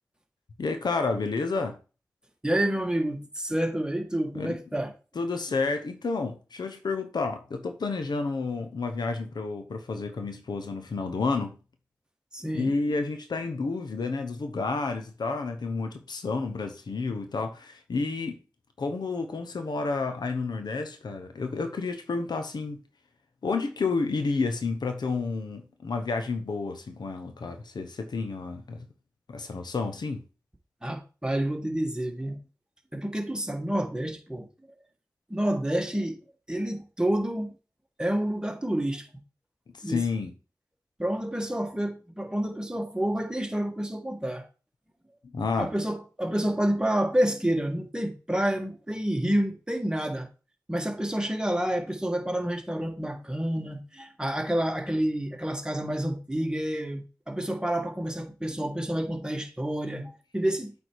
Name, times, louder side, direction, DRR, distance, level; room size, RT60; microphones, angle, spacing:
voice 1, 0.6-1.8 4.3-4.6 5.1-11.6 12.5-18.4 18.8-22.8 23.4-28.8 29.3-30.2 39.8-40.3 45.3-45.7, left 4 dB, 90° left, 0.9 m, -30 dB
voice 2, 2.4-4.9 12.3-12.7 30.8-32.4 32.9-34.5 35.3-36.2 36.5-37.5 38.0-39.0 39.8-40.0 41.0-44.4 45.6-50.3 50.7-60.7, right 1 dB, 10° right, 1.7 m, -29 dB
8.0 x 3.6 x 4.7 m
cardioid pair, 50°, 7 cm